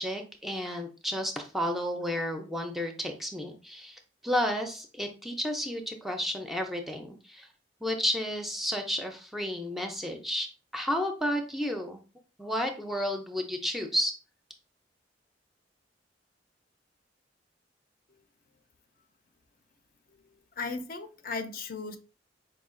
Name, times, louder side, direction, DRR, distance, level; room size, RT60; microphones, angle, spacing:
voice 1, 0.0-7.5 7.8-10.5 10.7-12.0 12.4-14.1, equal, ahead, 0.5 m, -32 dB
voice 2, 20.6-22.0, left 4 dB, 55° left, 0.6 m, -36 dB
4.9 x 2.3 x 3.6 m
head